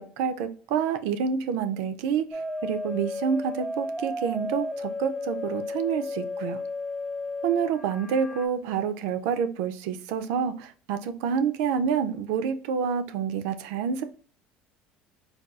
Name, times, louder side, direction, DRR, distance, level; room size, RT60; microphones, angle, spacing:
voice 1, 0.0-6.6 7.4-14.0, right 7 dB, 80° right, 0.4 m, -28 dB
sound 1, 2.3-8.5, left 2 dB, 5° left, 0.3 m, -33 dB
4.0 x 2.2 x 2.3 m
cardioid pair, 125°, 3 cm